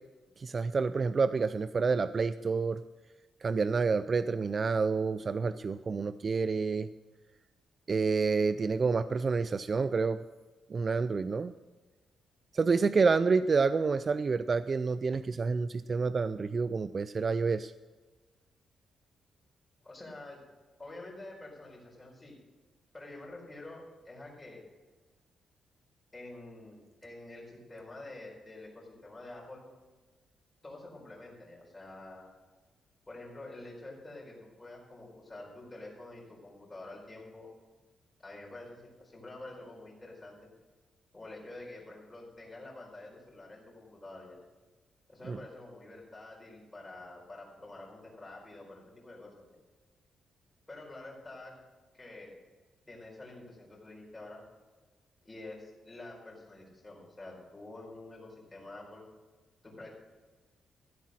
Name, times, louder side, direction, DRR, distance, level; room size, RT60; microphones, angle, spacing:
voice 1, 0.4-2.8 3.4-6.9 7.9-10.2 10.7-11.6 12.5-17.7 45.3-45.4, right 4 dB, 30° right, 13 dB, 0.3 m, -28 dB
voice 2, 19.8-20.4 20.8-22.4 22.9-24.6 26.1-29.6 30.6-32.3 33.1-37.5 38.2-40.5 41.1-44.4 45.1-49.6 50.7-51.5 51.9-52.4 52.9-54.4 55.2-59.0 59.6-59.9, left 2 dB, 15° left, -3 dB, 4.5 m, -48 dB
14.5 x 8.3 x 6.3 m, 1.3 s
wide cardioid pair, 155°, 0 cm